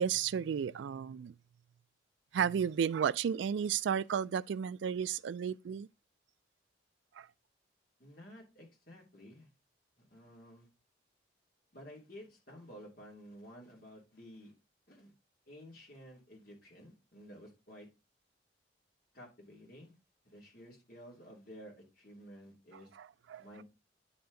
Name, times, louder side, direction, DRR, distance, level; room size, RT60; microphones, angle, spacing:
voice 1, 0.0-1.3 2.3-5.9 7.2-7.3 23.3-23.4, right 7 dB, 70° right, 0.3 m, -32 dB
voice 2, 8.0-9.5 10.0-10.7 11.7-14.5 14.9-15.1 15.5-17.9 19.1-20.0 20.2-23.0 23.4-23.6, equal, 50° left, 2.7 m, -53 dB
9.3 x 4.4 x 3.9 m
head